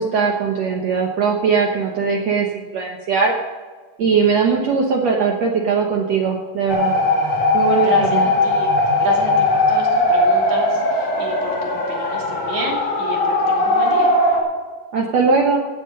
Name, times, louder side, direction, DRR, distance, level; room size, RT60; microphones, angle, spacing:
voice 1, 0.0-3.3 4.0-6.9 7.5-8.3 14.9-15.6, right 5 dB, 80° right, 0 dB, 1.5 m, -19 dB
sound 1, 6.7-14.4, left 2 dB, 40° left, 3.2 m, -18 dB
voice 2, 7.8-8.7 9.0-14.1, right 1 dB, 45° right, -2 dB, 3.8 m, -30 dB
17.0 x 8.0 x 5.3 m, 1.4 s
omnidirectional pair, 4.8 m